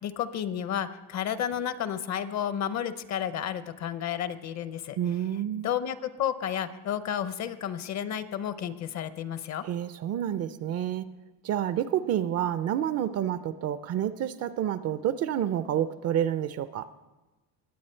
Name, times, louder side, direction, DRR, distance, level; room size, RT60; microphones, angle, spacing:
voice 1, 0.0-5.0 5.6-9.7, left 9 dB, 45° left, 13 dB, 0.7 m, -31 dB
voice 2, 5.0-5.7 9.6-11.0 11.4-16.9, right 10 dB, 40° right, 14 dB, 0.4 m, -29 dB
21.0 x 8.0 x 4.4 m, 1.1 s
cardioid pair, 130°, 39 cm